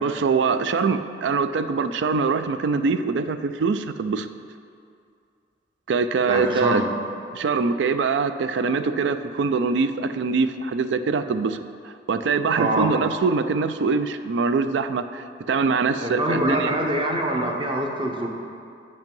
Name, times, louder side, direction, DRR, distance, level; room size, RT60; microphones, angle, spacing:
voice 1, 0.0-4.3 5.9-6.8 7.3-11.6 11.8-16.7, right 4 dB, 85° right, 11 dB, 0.4 m, -23 dB
voice 2, 6.3-6.9 12.6-12.9 16.0-18.3, right 1 dB, 30° right, 1 dB, 0.8 m, -24 dB
7.9 x 5.3 x 5.3 m, 2.4 s
head